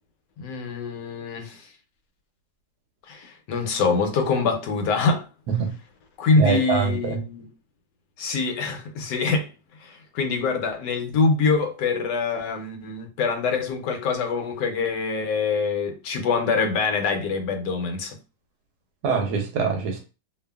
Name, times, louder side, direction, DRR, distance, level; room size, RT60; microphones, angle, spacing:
voice 1, 0.4-1.7 3.1-5.3 6.2-7.4 8.2-9.5 9.8-18.2, left 4 dB, 80° left, 1.2 m, -24 dB
voice 2, 6.3-7.2 19.0-20.1, right 5 dB, 70° right, 1.1 m, -24 dB
2.7 x 2.4 x 2.2 m
omnidirectional pair, 1.9 m